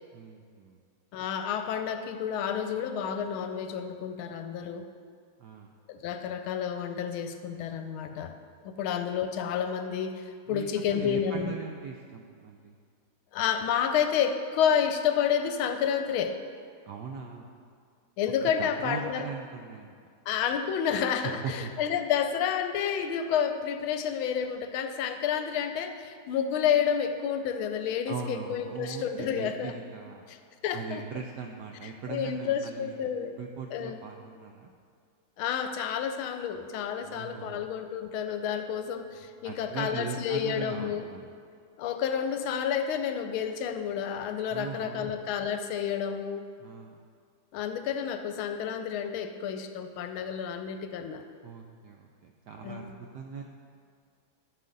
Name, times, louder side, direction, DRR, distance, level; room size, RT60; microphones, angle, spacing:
voice 1, 0.1-0.8 5.4-5.7 10.5-12.7 16.8-17.5 18.6-19.9 21.2-21.7 28.1-30.2 30.7-34.7 37.0-37.6 39.4-41.3 44.5-45.2 46.6-47.0 51.4-53.4, right 6 dB, 80° right, 2 dB, 0.9 m, -40 dB
voice 2, 1.1-4.9 5.9-8.3 8.6-11.5 13.3-16.4 18.2-19.3 20.3-29.7 30.3-30.4 30.6-31.0 31.8-33.4 33.7-34.0 35.4-41.1 41.8-46.4 47.5-51.2 52.6-53.0, left 8 dB, 75° left, 8 dB, 1.4 m, -30 dB
13.0 x 6.6 x 3.9 m, 2.2 s
omnidirectional pair, 2.4 m